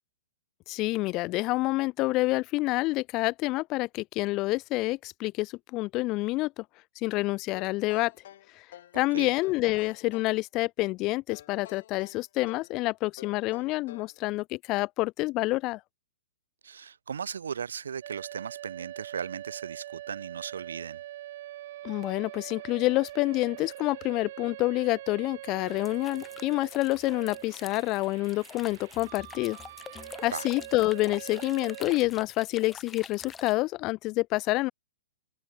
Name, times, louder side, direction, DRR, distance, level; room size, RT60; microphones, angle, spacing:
voice 1, 0.7-6.6 7.0-8.1 8.6-8.7 8.9-15.8 21.8-29.6 30.2-34.7, left 20 dB, 35° left, 0.6 m, -28 dB
sound 1, 7.5-9.0 9.4-10.4 11.3-12.8 13.2-14.2, left 12 dB, 60° left, 1.2 m, -49 dB
voice 2, 8.9-9.3 16.6-21.0 30.3-30.5, right 7 dB, 80° right, 1.2 m, -37 dB
sound 2, 18.0-32.0, right 15 dB, 55° right, 0.9 m, -43 dB
sound 3, 25.7-33.6, left 6 dB, 15° left, 3.5 m, -47 dB
open air
hypercardioid pair, 130°, 0 cm